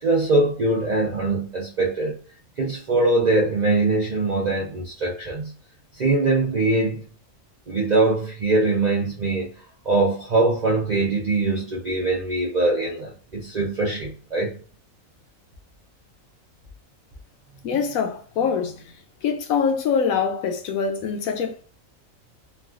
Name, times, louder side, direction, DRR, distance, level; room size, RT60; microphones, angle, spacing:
voice 1, 0.0-2.1 2.6-5.5 6.0-7.0 7.7-9.5 9.8-14.6, right 2 dB, 60° right, 0.4 m, -22 dB
voice 2, 17.6-18.7 19.2-21.6, left 6 dB, 80° left, 1.0 m, -24 dB
3.2 x 2.3 x 2.4 m
omnidirectional pair, 1.5 m